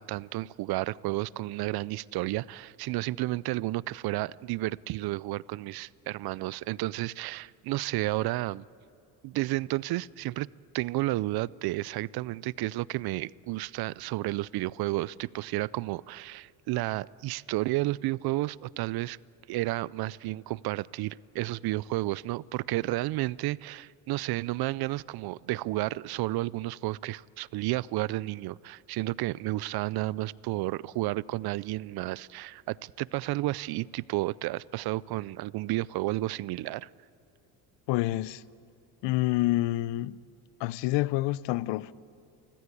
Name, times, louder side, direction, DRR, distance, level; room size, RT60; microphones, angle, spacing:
voice 1, 0.0-8.6 9.2-10.5 10.7-19.2 19.5-36.9, right 18 dB, 60° right, 0.5 m, -32 dB
voice 2, 37.9-38.4 39.0-40.2 40.6-41.9, left 17 dB, 75° left, 0.7 m, -27 dB
29.0 x 15.0 x 8.4 m
cardioid pair, 110°, 43 cm